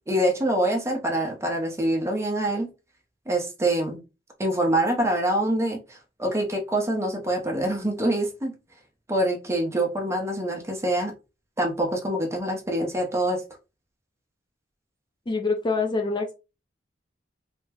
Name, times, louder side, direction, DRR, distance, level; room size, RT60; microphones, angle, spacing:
voice 1, 0.1-2.7 3.3-4.0 4.4-8.5 9.1-11.1 11.6-13.4, right 1 dB, 15° right, 2 dB, 0.7 m, -25 dB
voice 2, 15.3-16.4, left 3 dB, 25° left, 2 dB, 0.5 m, -25 dB
3.3 x 2.1 x 3.4 m, 0.29 s
head